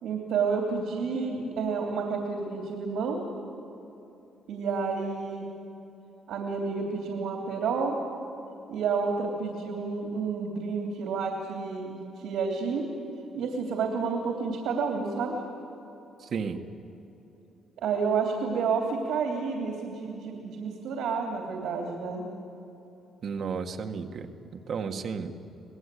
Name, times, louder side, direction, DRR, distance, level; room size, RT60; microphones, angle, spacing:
voice 1, 0.0-3.2 4.5-5.4 6.3-8.0 8.7-12.9 13.3-15.4 17.8-22.3, right 5 dB, 85° right, 1 dB, 3.1 m, -30 dB
voice 2, 16.2-16.6 23.2-24.3 24.7-25.3, right 6 dB, 60° right, 6 dB, 1.7 m, -33 dB
26.5 x 19.0 x 8.5 m, 3.0 s
cardioid pair, 90°, 0 cm